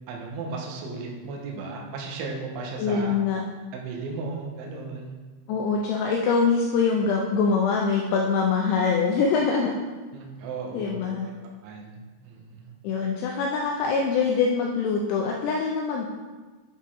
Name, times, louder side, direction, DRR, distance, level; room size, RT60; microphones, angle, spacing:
voice 1, 0.1-3.1 3.7-5.2 10.1-11.1 11.6-12.7, right 4 dB, 80° right, 0 dB, 3.3 m, -35 dB
voice 2, 2.8-3.4 5.5-9.8 10.7-11.3 12.8-16.1, left 5 dB, 90° left, 0 dB, 2.4 m, -24 dB
9.2 x 6.6 x 3.7 m, 1.3 s
omnidirectional pair, 5.7 m